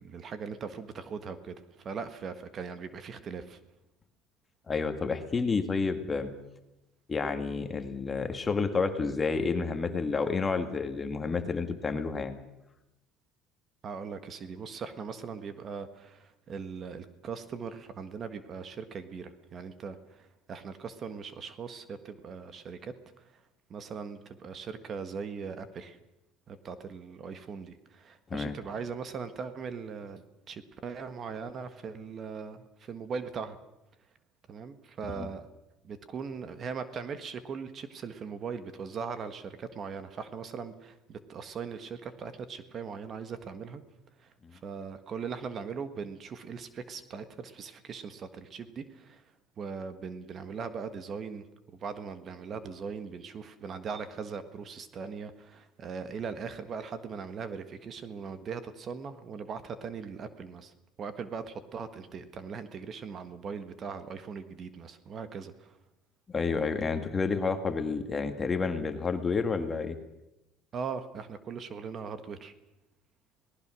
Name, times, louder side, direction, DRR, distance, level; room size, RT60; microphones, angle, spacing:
voice 1, 0.0-3.6 13.8-22.9 23.2-23.3 23.7-26.0 26.5-33.6 34.5-35.5 35.8-43.8 44.2-49.2 49.6-51.4 51.8-60.7 61.0-65.7 70.7-72.5, right 5 dB, 40° right, 11 dB, 1.5 m, -40 dB
voice 2, 4.7-6.3 7.1-12.4 28.3-28.5 35.2-35.3 66.3-70.0, left 4 dB, 20° left, 7 dB, 1.9 m, -30 dB
27.0 x 18.5 x 6.3 m, 0.92 s
cardioid pair, 120°, 0 cm